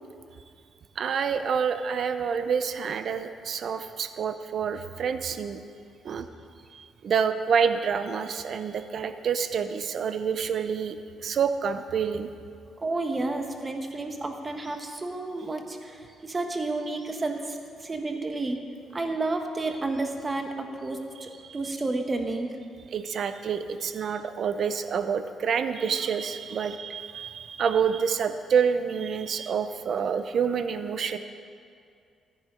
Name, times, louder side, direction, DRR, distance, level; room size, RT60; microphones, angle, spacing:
voice 1, 1.0-5.6 6.0-6.3 6.7-11.0 11.2-12.3 22.9-31.2, right 6 dB, 60° right, 10 dB, 0.6 m, -27 dB
voice 2, 12.8-18.6 18.9-22.5, right 2 dB, 25° right, 4 dB, 1.3 m, -31 dB
14.0 x 9.5 x 5.1 m, 2.4 s
cardioid pair, 90°, 0 cm